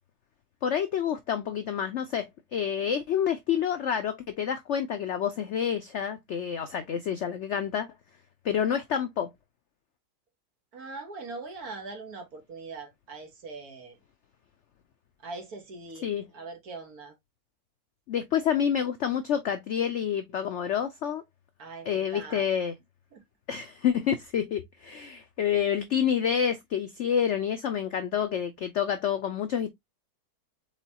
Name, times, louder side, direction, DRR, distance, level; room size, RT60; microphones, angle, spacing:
voice 1, 0.6-7.9 8.4-9.3 16.0-16.2 18.1-21.2 21.9-22.7 23.5-29.7, left 8 dB, 85° left, 0.6 m, -28 dB
voice 2, 10.7-14.0 15.2-17.1 21.6-22.5 23.1-23.2, right 3 dB, 60° right, 1.8 m, -41 dB
4.5 x 3.9 x 2.8 m
omnidirectional pair, 1.9 m